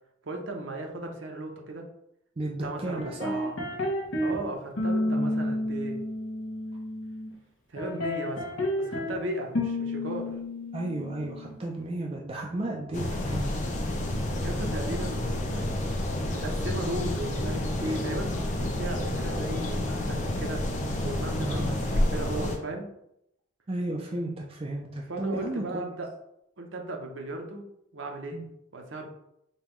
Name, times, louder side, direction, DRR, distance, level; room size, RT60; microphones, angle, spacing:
voice 1, 0.2-1.9 2.6-3.6 4.2-6.0 7.7-10.3 14.4-15.7 16.3-22.9 25.1-26.1 26.6-27.6 27.9-28.4 28.7-29.1, right 2 dB, 70° right, 2 dB, 0.7 m, -36 dB
voice 2, 2.4-3.4 5.1-5.4 10.7-13.6 21.4-21.8 23.7-25.6 28.3-28.5, right 1 dB, 30° right, -1 dB, 0.4 m, -33 dB
sound 1, 3.0-4.4 4.8-7.3 7.8-9.2 9.5-11.5, left 1 dB, 80° left, 0.9 m, -30 dB
sound 2, 12.9-22.6, left 1 dB, 35° left, 0.5 m, -29 dB
5.3 x 2.3 x 3.0 m, 0.78 s
head